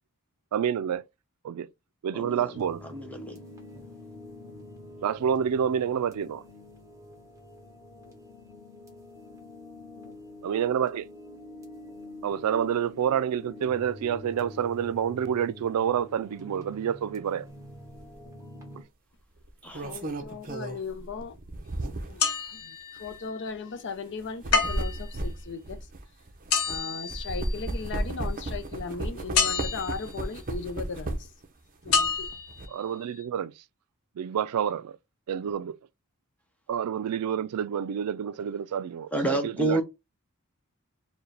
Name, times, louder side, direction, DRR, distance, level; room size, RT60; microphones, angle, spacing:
voice 1, 0.5-1.0 1.4-1.7 2.0-2.8 5.0-6.4 10.4-11.1 12.2-17.5 32.7-33.5 34.2-35.0 35.3-35.8 36.7-39.8, right 8 dB, 90° right, 0.4 m, -28 dB
voice 2, 2.1-2.5 2.9-3.4 19.6-20.0 39.1-39.8, right 2 dB, 5° left, 0.7 m, -29 dB
sound 1, 2.5-18.8, left 1 dB, 15° right, 1.4 m, -46 dB
sound 2, 17.9-18.1 19.4-22.3 23.0-23.1 24.2-26.8 27.1-31.4 31.8-32.7, right 1 dB, 40° right, 0.7 m, -34 dB
voice 3, 19.8-21.4 22.1-25.9 26.7-31.3 31.8-32.3, left 5 dB, 55° left, 0.5 m, -37 dB
sound 3, 22.2-23.2 24.5-25.1 26.5-27.8 29.3-30.1 31.9-32.6 33.2-33.3, left 5 dB, 70° left, 0.8 m, -28 dB
4.6 x 2.2 x 3.3 m
head